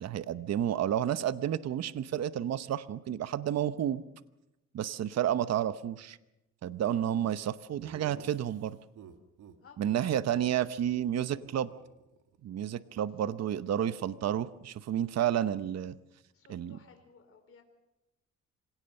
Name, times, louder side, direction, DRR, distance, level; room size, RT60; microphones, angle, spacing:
voice 1, 0.0-4.0 4.7-6.2 6.6-8.8 9.8-11.7 12.4-16.0 16.5-16.8, right 10 dB, 60° right, 14 dB, 0.9 m, -31 dB
voice 2, 4.8-5.3 9.6-10.1 16.3-17.6, left 5 dB, 45° left, 4 dB, 4.3 m, -58 dB
Laughter, 7.8-9.6 9.9-10.0 10.3-10.5 10.8-12.4, right 8 dB, 85° right, 1.9 m, -53 dB
26.0 x 17.5 x 6.6 m, 0.94 s
cardioid pair, 90°, 30 cm